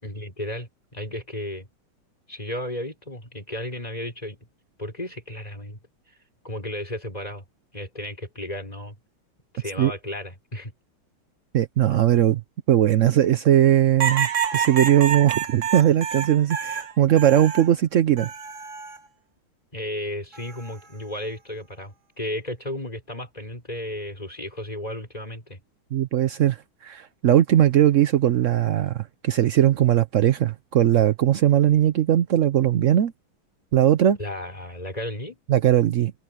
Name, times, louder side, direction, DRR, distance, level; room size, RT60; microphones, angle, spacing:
voice 1, 0.0-1.7 2.3-4.4 4.8-5.8 6.4-7.4 7.7-9.0 9.5-10.7 19.7-25.6 34.2-35.4, left 1 dB, 20° left, 5.7 m, -34 dB
voice 2, 11.5-12.4 12.7-18.3 25.9-26.6 26.8-33.1 33.7-34.2 35.5-36.1, right 11 dB, 85° right, 0.6 m, -19 dB
sound 1, 14.0-17.7 18.2-19.0 20.3-20.8, right 7 dB, 40° right, 1.5 m, -28 dB
omnidirectional pair, 2.2 m